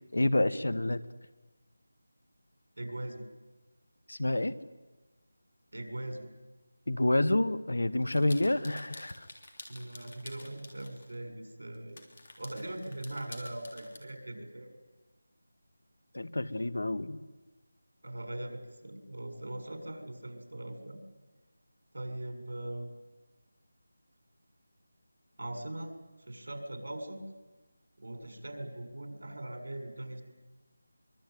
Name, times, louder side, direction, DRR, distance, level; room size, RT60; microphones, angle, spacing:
voice 1, 0.1-1.0 4.1-4.6 6.9-9.3 16.1-17.2, left 1 dB, 90° left, 14 dB, 1.7 m, -28 dB
voice 2, 2.8-3.2 5.7-6.3 9.7-12.0 12.4-14.7 18.0-21.0 21.9-22.9 25.4-25.9 26.3-27.2 28.0-30.2, right 1 dB, 70° right, 6 dB, 6.9 m, -40 dB
sound 1, 8.1-11.1 11.7-14.0, left 2 dB, 30° left, 3.3 m, -50 dB
24.5 x 23.5 x 9.6 m, 1.2 s
figure-of-eight pair, 180°, 0 cm